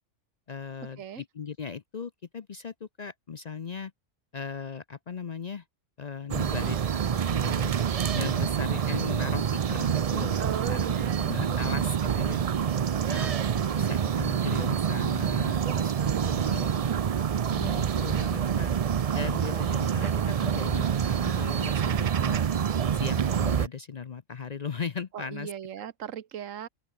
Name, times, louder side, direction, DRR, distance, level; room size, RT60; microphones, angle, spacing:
voice 1, 0.5-3.9 4.3-5.6 6.0-10.4 10.7-10.9 11.3-12.4 13.1-13.4 13.7-16.9 17.5-18.7 19.1-22.4 22.9-25.5, left 6 dB, 45° left, 0.6 m, -38 dB
sound 1, 6.3-23.7, right 8 dB, 55° right, 0.4 m, -27 dB
voice 2, 10.4-11.7 15.6-17.0 19.2-19.5 25.1-26.7, right 9 dB, 85° right, 1.3 m, -39 dB
open air
omnidirectional pair, 1.3 m